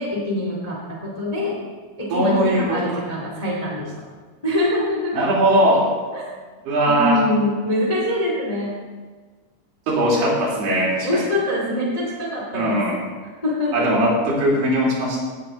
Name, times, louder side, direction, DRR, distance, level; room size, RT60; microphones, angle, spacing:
voice 1, 0.0-1.5 2.0-3.9 4.4-5.2 6.1-6.2 6.8-8.7 11.0-12.8 13.4-13.9, left 1 dB, 20° left, -5 dB, 1.0 m, -24 dB
voice 2, 2.1-3.0 5.1-5.9 6.6-7.2 9.9-11.3 12.5-13.0 13.7-15.2, right 1 dB, 60° right, -5 dB, 5.1 m, -20 dB
17.5 x 8.9 x 4.0 m, 1.4 s
omnidirectional pair, 5.6 m